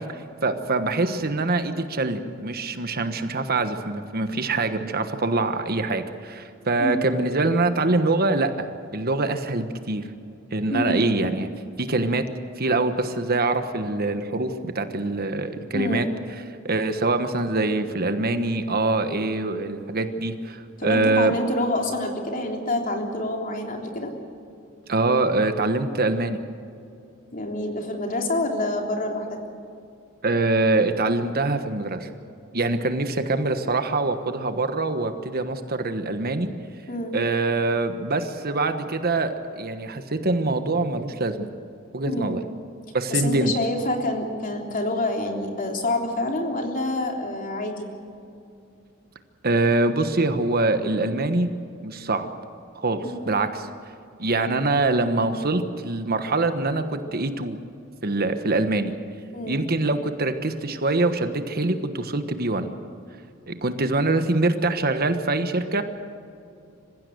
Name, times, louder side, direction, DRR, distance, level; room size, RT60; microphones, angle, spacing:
voice 1, 0.0-10.0 10.5-11.5 11.8-12.2 12.6-16.1 16.6-21.4 24.9-26.4 30.2-32.1 32.5-36.5 37.1-41.5 41.9-42.4 42.9-43.5 49.4-51.5 51.8-52.3 52.7-53.7 54.2-57.6 58.0-58.9 59.5-62.7 63.5-65.8, right 2 dB, 50° right, 9 dB, 1.3 m, -24 dB
voice 2, 10.7-11.1 15.7-16.1 20.8-24.1 27.3-29.4 36.9-37.2 42.1-42.4 43.1-47.9 53.0-53.3 59.3-59.6, left 1 dB, 40° left, 2 dB, 3.4 m, -27 dB
26.5 x 16.0 x 7.9 m, 2.6 s
head